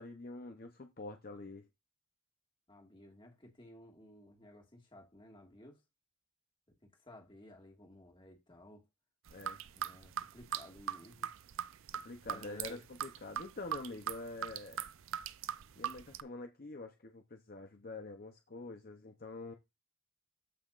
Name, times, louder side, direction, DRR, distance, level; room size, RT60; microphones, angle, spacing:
voice 1, 0.0-1.7 9.3-9.6 11.9-14.9 15.8-19.5, left 2 dB, 45° left, 0.7 m, -46 dB
voice 2, 2.7-5.8 6.8-8.8 9.7-11.3 12.2-12.8, left 1 dB, 20° left, 1.8 m, -55 dB
sound 1, 9.3-16.2, right 9 dB, 65° right, 0.5 m, -40 dB
13.5 x 5.7 x 2.5 m
head